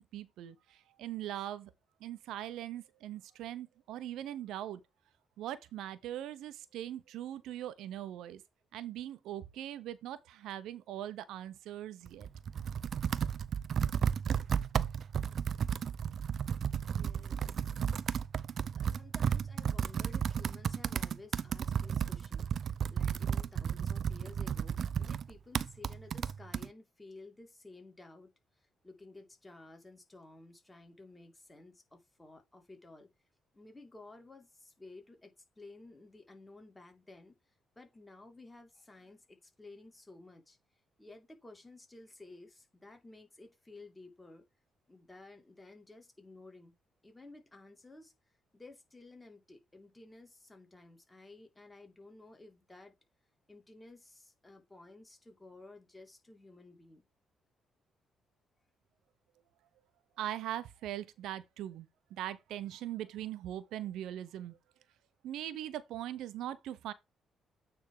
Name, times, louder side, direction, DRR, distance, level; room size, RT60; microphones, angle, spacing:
voice 1, 0.0-1.7 2.0-4.8 5.4-8.4 8.7-12.3 60.2-64.6 65.2-66.9, right 12 dB, 85° right, 0.8 m, -41 dB
Computer keyboard, 12.1-26.7, right 8 dB, 55° right, 0.4 m, -33 dB
voice 2, 16.9-17.4 18.8-28.3 28.6-33.1 33.5-37.4 37.8-40.6 41.0-44.5 44.9-46.7 47.0-48.1 48.5-52.9 53.5-57.0, left 2 dB, 15° left, 2.5 m, -54 dB
8.9 x 3.5 x 4.8 m
cardioid pair, 90°, 0 cm